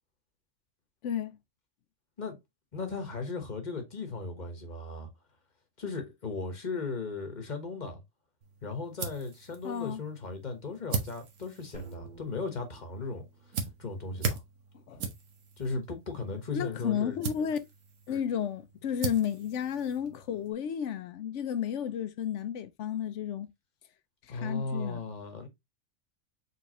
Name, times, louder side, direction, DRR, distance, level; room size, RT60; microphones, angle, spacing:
voice 1, 1.0-1.4 9.6-10.0 14.9-15.0 16.5-17.6 18.1-23.5 24.3-25.0, left 9 dB, 65° left, 0.9 m, -32 dB
voice 2, 2.7-5.1 5.8-8.0 8.6-13.3 13.8-14.4 15.6-17.2 24.3-25.5, left 3 dB, 35° left, 1.2 m, -36 dB
sound 1, 8.4-20.5, right 5 dB, 70° right, 1.3 m, -40 dB
sound 2, 11.7-13.9, right 4 dB, 35° right, 1.8 m, -49 dB
4.6 x 3.5 x 2.9 m
omnidirectional pair, 1.4 m